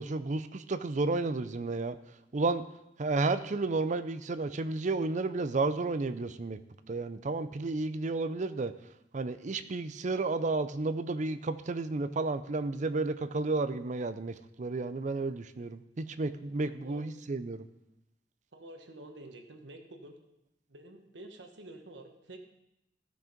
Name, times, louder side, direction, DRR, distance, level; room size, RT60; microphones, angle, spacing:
voice 1, 0.0-2.0 2.3-2.6 3.0-6.6 6.9-8.7 9.1-17.7, right 3 dB, 45° right, 12 dB, 0.5 m, -32 dB
voice 2, 16.7-17.0 18.5-20.2 20.7-22.4, right 1 dB, 85° right, 5 dB, 1.3 m, -49 dB
14.5 x 6.2 x 5.2 m, 0.87 s
head